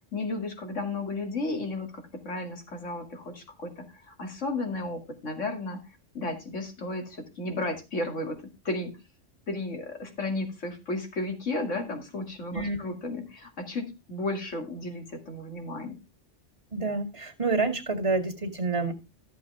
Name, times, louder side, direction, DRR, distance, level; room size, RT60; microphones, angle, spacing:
voice 1, 0.1-8.4 8.6-9.0 9.5-16.0, left 2 dB, 85° left, 5 dB, 2.7 m, -33 dB
voice 2, 16.7-18.9, right 3 dB, 25° right, 2 dB, 2.2 m, -28 dB
14.0 x 7.5 x 3.4 m, 0.25 s
omnidirectional pair, 1.2 m